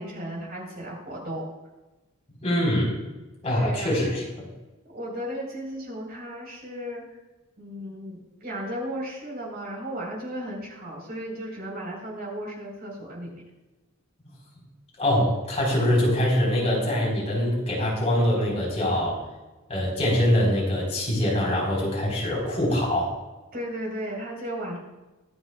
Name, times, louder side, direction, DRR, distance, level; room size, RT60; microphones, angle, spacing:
voice 1, 0.0-1.5 3.4-4.2 4.8-7.2 7.6-13.4 23.5-24.8, equal, 45° right, -2 dB, 4.2 m, -35 dB
voice 2, 2.4-2.9 3.4-4.4 15.0-19.2 19.7-23.1, left 1 dB, 30° left, -4 dB, 4.2 m, -24 dB
23.5 x 7.9 x 2.4 m, 1.1 s
head